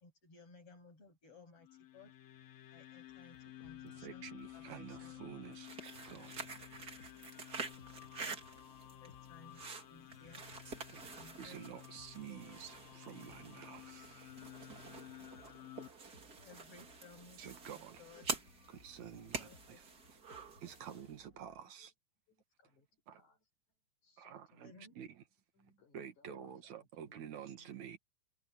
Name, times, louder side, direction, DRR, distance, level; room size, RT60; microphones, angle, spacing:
voice 1, 0.0-1.7 1.9-2.1 2.7-5.2 9.0-9.6 9.9-10.4 11.1-11.7 12.3-12.6 16.4-17.4 17.7-18.3 19.4-19.8 24.6-24.9 26.3-26.4, left 3 dB, 50° left, 8.4 m, -59 dB
sound 1, 1.6-15.9, left 13 dB, 70° left, 2.3 m, -54 dB
sound 2, 3.1-21.6, left 2 dB, 25° left, 6.2 m, -65 dB
voice 2, 3.8-6.3 8.4-8.5 10.4-10.6 10.9-11.0 11.4-14.3 16.2-16.4 17.4-18.0 18.7-21.9 23.1-23.2 24.2-25.2 25.9-28.0, right 9 dB, 75° right, 2.9 m, -50 dB
sound 3, 5.5-21.1, right 4 dB, 35° right, 2.6 m, -48 dB
voice 3, 20.6-21.3 21.8-21.9 22.3-23.4 24.0-25.0 25.5-28.0, left 2 dB, 85° left, 7.5 m, -69 dB
omnidirectional pair, 3.4 m